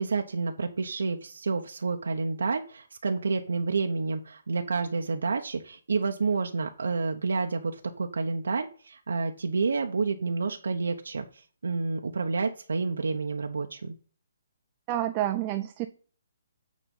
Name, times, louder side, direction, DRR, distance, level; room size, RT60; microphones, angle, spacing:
voice 1, 0.0-14.0, right 4 dB, 90° right, 4 dB, 0.8 m, -29 dB
voice 2, 14.9-15.9, right 13 dB, 20° right, 6 dB, 0.4 m, -28 dB
8.6 x 4.0 x 5.4 m, 0.41 s
hypercardioid pair, 170°, 0 cm